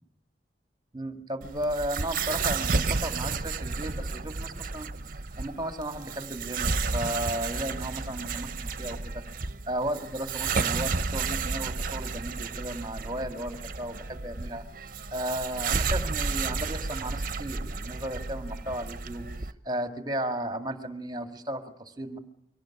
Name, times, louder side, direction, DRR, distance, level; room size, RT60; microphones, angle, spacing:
voice 1, 0.9-4.9 5.4-9.2 9.6-22.2, right 1 dB, 25° right, 7 dB, 2.1 m, -35 dB
sound 1, 1.4-19.5, right 4 dB, 50° right, 1.0 m, -32 dB
24.0 x 18.0 x 9.9 m, 0.71 s
head